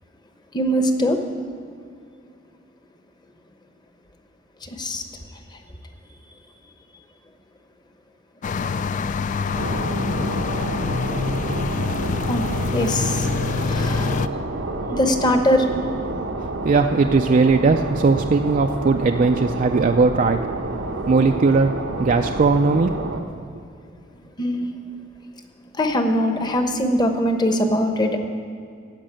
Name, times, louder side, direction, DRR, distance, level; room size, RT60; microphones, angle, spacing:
voice 1, 0.5-1.2 4.6-5.0 12.3-12.4 12.7-13.3 13.6-14.1 14.9-15.7 24.4-24.7 25.8-28.2, equal, 20° left, 5 dB, 0.9 m, -21 dB
sound 1, 8.4-14.3, left 5 dB, 40° left, 0.3 m, -25 dB
sound 2, 9.5-23.2, right 2 dB, 90° right, 1.0 m, -29 dB
voice 2, 16.6-20.4 21.1-23.1, right 4 dB, 40° right, 4 dB, 0.4 m, -18 dB
15.0 x 5.3 x 9.0 m, 2.4 s
head